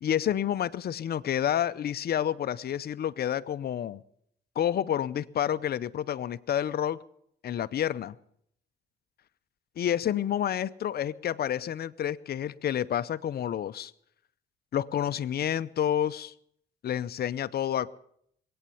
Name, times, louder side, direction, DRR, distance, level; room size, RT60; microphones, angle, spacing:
voice 1, 0.0-4.0 4.6-7.0 7.4-8.2 9.8-13.9 14.7-16.3 16.8-17.9, left 10 dB, 50° left, 13 dB, 0.6 m, -29 dB
21.5 x 8.8 x 7.0 m, 0.69 s
cardioid pair, 90°, 20 cm